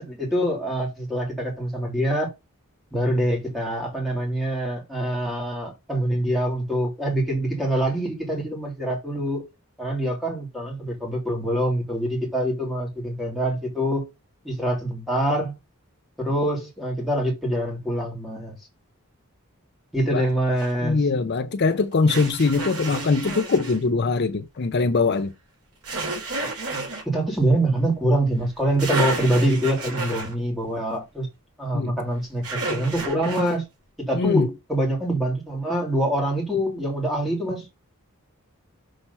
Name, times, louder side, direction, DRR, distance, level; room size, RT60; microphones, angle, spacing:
voice 1, 0.0-2.3 2.9-9.5 9.8-14.1 14.4-15.6 16.2-18.5 19.9-21.0 26.4-26.5 27.0-31.3 31.6-33.6 34.0-37.7, right 1 dB, ahead, 3.0 m, -25 dB
sound 1, 20.6-20.7 22.1-23.8 25.8-27.0 28.5-28.6 28.8-30.3 32.4-33.6, right 3 dB, 75° right, 3.3 m, -30 dB
voice 2, 20.8-25.3 31.7-32.0 34.1-34.5, left 4 dB, 50° left, 0.5 m, -22 dB
6.5 x 4.3 x 5.6 m
head